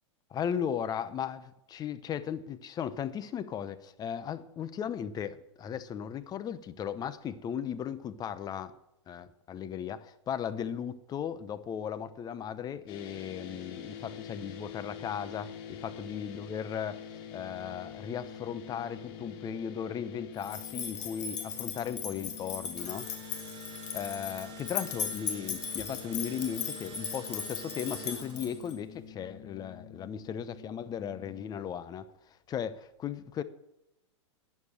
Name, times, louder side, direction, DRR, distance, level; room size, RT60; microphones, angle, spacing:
voice 1, 0.3-8.7 9.1-17.0 17.3-23.1 23.9-33.4, left 8 dB, 25° left, 0.8 m, -36 dB
sound 1, 12.9-31.6, left 8 dB, 55° left, 2.6 m, -46 dB
sound 2, 20.4-28.7, left 7 dB, 75° left, 2.5 m, -38 dB
Engine / Drill, 22.5-28.8, right 6 dB, 30° right, 5.5 m, -49 dB
13.0 x 9.5 x 6.5 m
hypercardioid pair, 110°, 15 cm